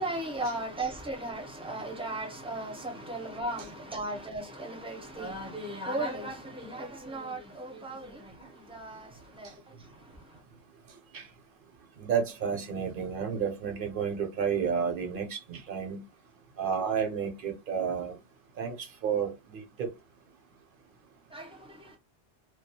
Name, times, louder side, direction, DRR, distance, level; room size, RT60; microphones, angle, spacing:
voice 1, 0.0-8.3 8.7-9.1 9.4-9.5 21.3-21.5, right 1 dB, 10° right, 0.4 m, -36 dB
voice 2, 12.0-16.0 16.6-18.2 18.6-19.9, right 7 dB, 55° right, 0.6 m, -31 dB
2.3 x 2.2 x 2.7 m
omnidirectional pair, 1.2 m